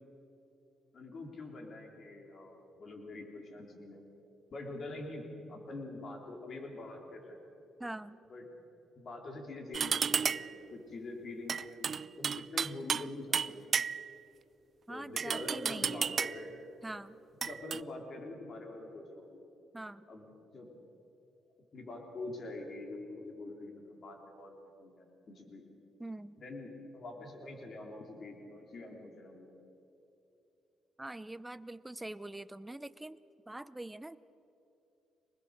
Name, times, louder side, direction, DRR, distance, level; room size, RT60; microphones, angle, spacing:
voice 1, 0.9-4.0 4.5-7.4 8.3-8.4 9.0-11.9 12.2-13.8 14.9-16.6 17.5-19.4 20.1-20.3 20.5-20.7 21.7-24.5 24.8-25.7 26.4-29.5, left 2 dB, 50° left, 2 dB, 3.8 m, -45 dB
voice 2, 7.8-8.2 14.9-16.2 16.8-17.2 19.7-20.1 26.0-26.4 31.0-33.2 33.5-34.2, right 1 dB, 10° right, 14 dB, 0.7 m, -44 dB
sound 1, 9.7-10.6 11.5-13.1 13.3-14.2 15.2-16.5 17.4-17.8, right 6 dB, 50° right, 0.4 m, -33 dB
24.5 x 20.5 x 6.7 m, 2.9 s
cardioid pair, 90°, 0 cm